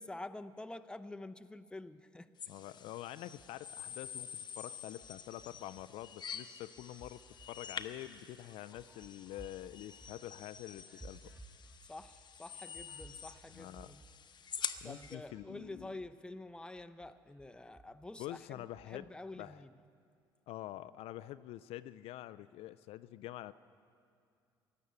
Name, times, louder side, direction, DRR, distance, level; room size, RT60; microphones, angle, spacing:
voice 1, 0.0-2.3 11.9-14.0 14.8-19.7, left 2 dB, 10° left, 10 dB, 0.6 m, -48 dB
sound 1, 2.4-15.2, left 7 dB, 40° left, 0.8 m, -47 dB
voice 2, 2.5-4.3 4.6-7.2 7.5-11.2 13.5-13.9 14.8-15.9 18.2-19.1 19.4-19.6 20.5-23.5, left 14 dB, 60° left, 14 dB, 0.4 m, -46 dB
sound 2, 3.4-4.1 4.5-6.1 6.5-16.2 16.5-19.1, right 2 dB, 20° right, 3.0 m, -60 dB
16.5 x 11.0 x 7.0 m, 2.4 s
hypercardioid pair, 60°, 11 cm